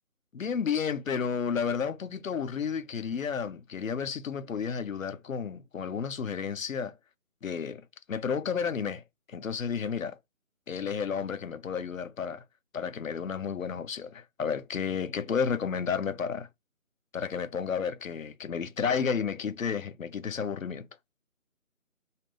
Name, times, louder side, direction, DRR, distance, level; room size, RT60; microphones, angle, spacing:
voice 1, 0.3-7.0 7.4-10.2 10.7-12.4 12.7-16.5 17.1-20.9, left 6 dB, 70° left, 0.6 m, -32 dB
2.7 x 2.4 x 3.3 m
figure-of-eight pair, 180°, 42 cm